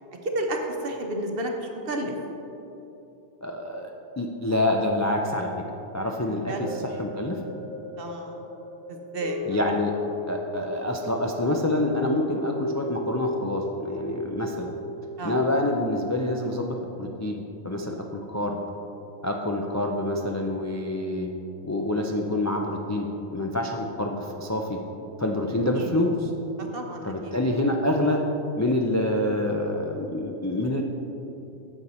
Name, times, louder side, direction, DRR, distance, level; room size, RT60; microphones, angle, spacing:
voice 1, 0.2-2.1 6.3-6.7 8.0-8.5 8.9-9.6 15.2-15.4 25.8-25.9 26.6-27.4, right 1 dB, 55° right, 2 dB, 1.1 m, -32 dB
voice 2, 3.4-5.5 5.9-7.4 9.4-9.9 10.3-14.7 15.2-18.6 19.2-21.3 21.6-24.8 25.2-26.3 27.0-28.2 28.6-30.8, left 1 dB, 25° left, 1 dB, 0.3 m, -27 dB
sound 1, 6.6-17.0 17.4-17.5, left 1 dB, 65° left, 1.6 m, -36 dB
10.5 x 7.1 x 4.3 m, 2.9 s
omnidirectional pair, 1.2 m